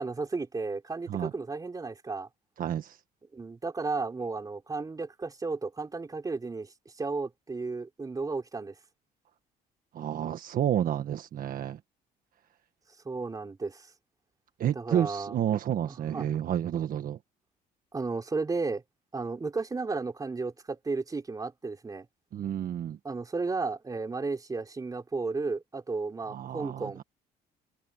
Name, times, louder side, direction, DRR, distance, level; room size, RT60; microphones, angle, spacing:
voice 1, 0.0-2.3 3.3-8.7 13.0-13.9 14.7-15.3 16.1-16.3 17.9-18.8 19.1-22.1 23.0-27.0, right 3 dB, 20° right, 3.8 m, -33 dB
voice 2, 2.6-3.0 9.9-11.8 14.6-17.2 22.3-23.0 26.3-27.0, right 10 dB, 55° right, 1.5 m, -30 dB
cardioid pair, 110°, 17 cm